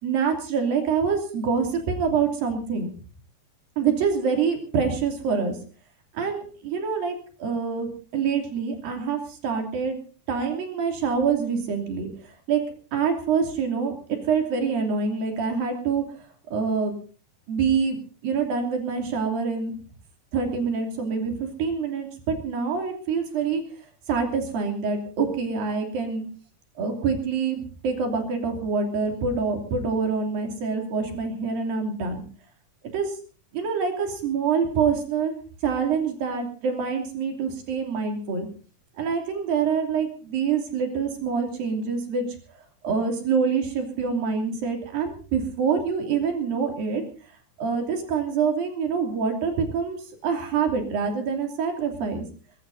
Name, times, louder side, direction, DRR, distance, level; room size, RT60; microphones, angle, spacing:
voice 1, 0.0-2.9 3.8-5.6 6.1-10.0 10.3-12.1 12.5-12.6 12.9-13.9 14.2-16.0 16.5-16.9 17.5-18.0 18.2-19.8 20.3-23.6 24.1-26.3 26.8-32.2 32.9-33.2 33.5-35.3 35.6-38.5 39.0-42.2 42.8-47.0 47.6-52.3, right 5 dB, 70° right, 4 dB, 4.7 m, -26 dB
21.5 x 21.5 x 2.7 m, 0.39 s
omnidirectional pair, 4.2 m